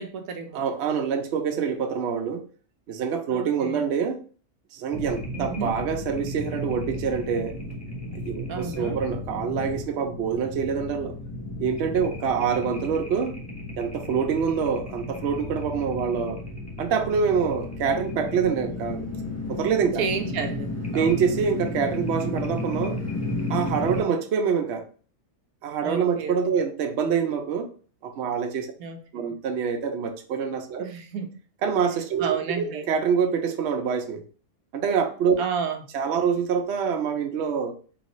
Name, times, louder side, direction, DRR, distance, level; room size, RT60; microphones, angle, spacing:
voice 1, 0.0-0.6 3.3-3.8 5.3-5.8 8.5-9.0 20.0-21.2 25.8-26.6 28.8-29.3 30.8-31.3 32.2-32.9 35.4-35.8, right 6 dB, 85° right, 1.1 m, -31 dB
voice 2, 0.5-2.5 2.9-4.2 4.7-7.6 8.2-11.1 11.6-13.4 13.8-16.4 16.8-19.0 19.5-20.0 20.9-23.0 23.5-24.9 25.6-27.7 28.0-28.7 29.1-30.9 31.6-34.2 34.7-35.4 35.9-37.7, right 6 dB, 60° right, 0.8 m, -26 dB
sound 1, 4.9-24.0, left 2 dB, 15° left, 0.7 m, -33 dB
3.9 x 3.4 x 3.0 m
omnidirectional pair, 1.5 m